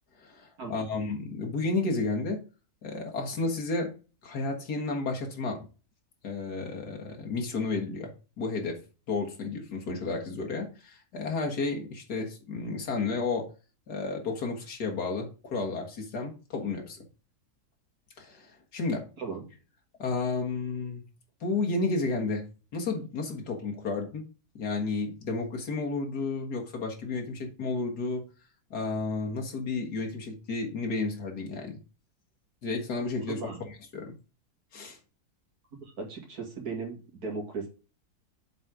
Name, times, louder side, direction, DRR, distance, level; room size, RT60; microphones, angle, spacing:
voice 1, 0.2-2.4 2.8-3.9 4.2-5.7 6.2-8.8 9.1-13.5 13.9-17.1 18.2-19.1 20.0-21.0 21.4-22.5 22.7-24.3 24.6-28.2 28.7-31.8 32.6-34.2 34.7-35.0, left 3 dB, 80° left, 1 dB, 2.1 m, -32 dB
voice 2, 35.8-37.7, right 4 dB, 70° right, 1 dB, 2.8 m, -36 dB
7.7 x 4.2 x 4.7 m, 0.33 s
omnidirectional pair, 1.7 m